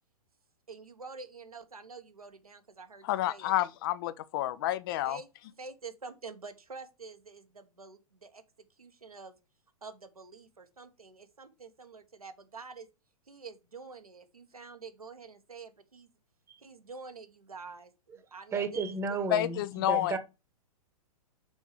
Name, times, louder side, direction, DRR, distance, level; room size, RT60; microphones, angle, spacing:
voice 1, 0.7-3.6 5.0-5.3 5.6-8.4 8.8-9.3 9.8-12.9 13.3-16.1 16.6-18.8 19.1-19.2, right 4 dB, 80° right, 1.3 m, -47 dB
voice 2, 3.0-5.2 19.3-20.2, left 14 dB, 35° left, 0.6 m, -29 dB
voice 3, 18.5-20.2, right 4 dB, 15° right, 1.1 m, -33 dB
6.2 x 4.6 x 5.2 m
figure-of-eight pair, 110°, 19 cm